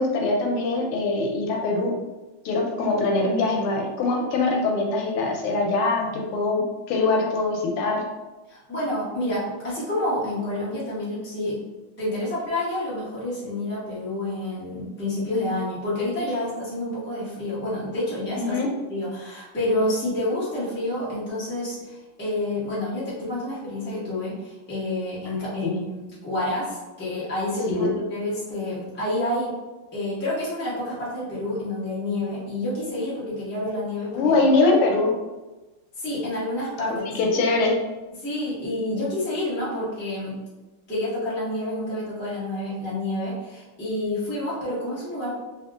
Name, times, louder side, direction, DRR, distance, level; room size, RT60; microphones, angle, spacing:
voice 1, 0.0-1.9 2.4-8.0 18.4-18.7 25.6-25.8 27.7-27.9 34.1-35.1 37.1-37.7, left 3 dB, 90° left, 0 dB, 1.6 m, -23 dB
voice 2, 8.5-11.6 12.0-18.6 18.9-29.5 29.9-34.4 36.0-37.1 38.2-40.3 40.9-45.3, left 1 dB, 10° left, -9 dB, 0.6 m, -28 dB
3.6 x 2.7 x 2.4 m, 1.1 s
omnidirectional pair, 2.4 m